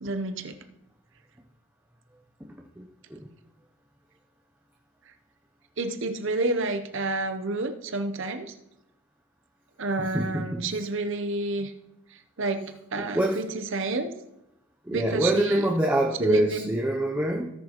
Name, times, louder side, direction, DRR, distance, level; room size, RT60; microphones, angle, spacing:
voice 1, 0.0-0.6 5.8-8.6 9.8-11.7 12.1-14.1 14.9-15.7 16.2-16.7, right 2 dB, 55° right, 7 dB, 0.8 m, -29 dB
voice 2, 2.8-3.3 10.0-10.6 13.0-13.4 14.8-17.5, right 1 dB, 10° right, 0 dB, 0.6 m, -26 dB
17.5 x 6.5 x 3.0 m, 0.85 s
head